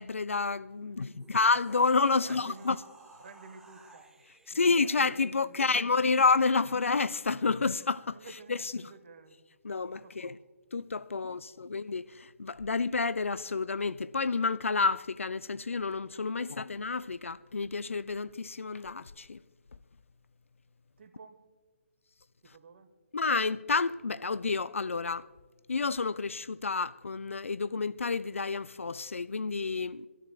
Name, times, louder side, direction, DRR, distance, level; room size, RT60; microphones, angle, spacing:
voice 1, 0.0-2.8 4.5-8.2 8.5-8.7 9.6-10.3 10.7-19.4 23.1-25.3 25.7-30.1, left 4 dB, 75° left, 0.4 m, -29 dB
voice 2, 0.8-1.3 2.1-2.8 3.2-4.1 4.5-6.2 8.1-9.4 9.9-10.4 11.1-11.6 16.3-16.5 21.0-21.5 22.4-22.9, right 4 dB, 55° right, 1.3 m, -53 dB
sound 1, 1.0-5.6, right 2 dB, 5° right, 1.0 m, -56 dB
25.0 x 13.5 x 2.3 m
figure-of-eight pair, 135°, 7 cm